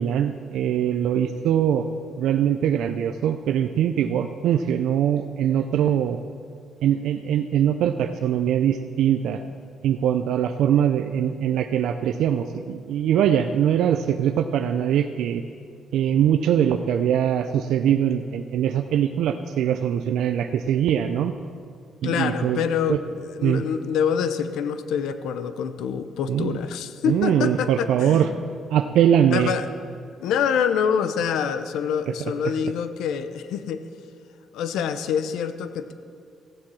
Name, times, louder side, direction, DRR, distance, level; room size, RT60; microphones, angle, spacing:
voice 1, 0.0-1.8 2.2-6.2 6.8-9.4 9.8-15.4 15.9-21.3 22.0-23.0 23.4-23.6 26.3-26.6 27.0-28.3 28.7-29.5 32.1-32.2, right 9 dB, 80° right, 7 dB, 0.4 m, -22 dB
voice 2, 22.0-28.3 29.3-29.7 30.2-33.9 34.5-35.9, left 7 dB, 85° left, 11 dB, 0.6 m, -26 dB
16.0 x 7.4 x 6.2 m, 2.3 s
cardioid pair, 90°, 0 cm